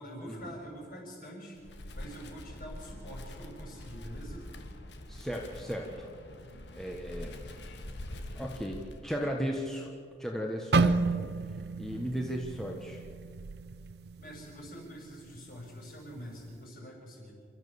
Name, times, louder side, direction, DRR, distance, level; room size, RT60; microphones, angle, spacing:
voice 1, 0.0-1.6 1.9-4.4 14.2-17.3, equal, 50° left, -2 dB, 6.7 m, -45 dB
Wind, 1.6-9.3, left 1 dB, 75° left, 1.7 m, -44 dB
voice 2, 5.1-6.1 6.7-7.6 8.3-9.9 10.2-11.1 11.8-13.0, equal, 5° left, 0 dB, 1.3 m, -35 dB
sound 1, 10.7-14.8 15.1-15.4 16.0-16.4, right 4 dB, 65° right, 0.6 m, -31 dB
29.0 x 13.0 x 7.1 m, 2.2 s
head